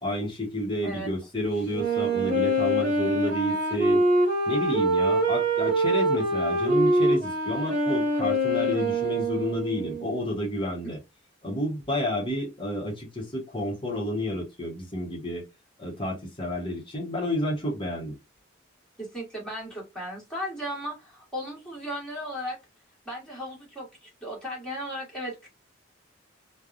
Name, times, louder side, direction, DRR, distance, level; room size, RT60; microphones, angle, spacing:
voice 1, 0.0-4.0 4.5-11.0 11.4-15.4 15.8-18.2, equal, 25° left, 1.2 m, -30 dB
Wind instrument woodwind instrument, 1.7-10.3, right 1 dB, 45° right, 1.3 m, -24 dB
voice 2, 19.0-22.6 23.0-25.5, equal, 5° left, 1.6 m, -36 dB
3.3 x 2.3 x 2.5 m
head